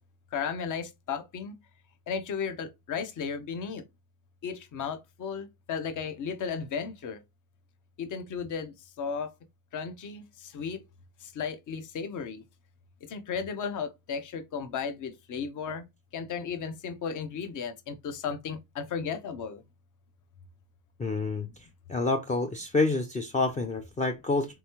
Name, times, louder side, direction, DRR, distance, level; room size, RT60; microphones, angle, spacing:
voice 1, 0.3-1.6 2.1-3.8 4.4-7.2 8.0-9.3 9.7-10.8 11.2-12.4 13.1-15.9 16.1-19.6, left 6 dB, 50° left, 0.9 m, -35 dB
voice 2, 21.0-21.5 21.9-24.5, left 3 dB, 20° left, 0.4 m, -28 dB
3.5 x 3.1 x 2.9 m
cardioid pair, 90°, 39 cm